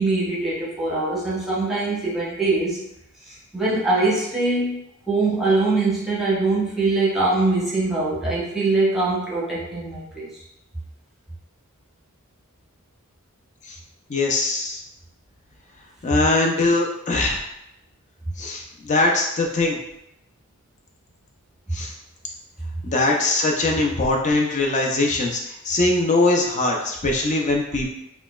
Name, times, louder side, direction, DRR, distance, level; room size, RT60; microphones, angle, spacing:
voice 1, 0.0-2.8 3.3-4.8 5.1-10.3, right 3 dB, ahead, -8 dB, 0.9 m, -22 dB
voice 2, 14.1-14.8 16.0-17.4 18.4-19.8 21.7-21.9 22.8-27.9, left 2 dB, 35° left, 0 dB, 0.5 m, -21 dB
4.3 x 2.2 x 2.3 m, 0.82 s
head